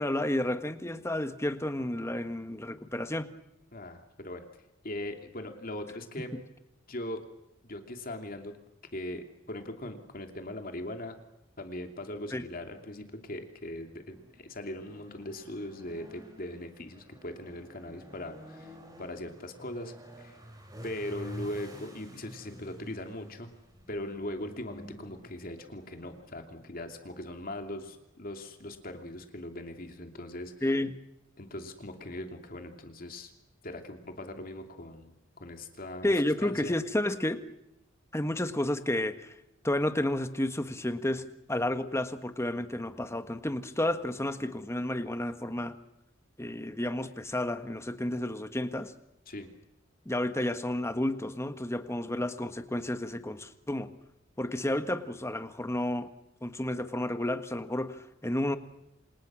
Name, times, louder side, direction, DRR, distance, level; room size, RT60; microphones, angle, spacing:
voice 1, 0.0-3.3 6.2-6.4 12.3-12.4 30.6-30.9 36.0-37.4 38.1-39.3 39.6-45.7 46.4-48.9 50.0-53.9 54.4-56.1 56.4-58.6, left 1 dB, 15° left, 9 dB, 1.6 m, -31 dB
voice 2, 3.7-4.4 4.8-6.3 6.9-7.2 7.6-8.5 8.9-11.2 11.6-20.4 20.8-23.5 23.9-30.5 31.4-33.3 33.6-35.1 35.4-36.1 36.4-36.7 49.3-49.5, left 1 dB, 45° left, 5 dB, 2.8 m, -40 dB
sound 1, 12.5-28.9, equal, 20° right, 8.0 m, -51 dB
28.0 x 28.0 x 6.3 m, 0.90 s
head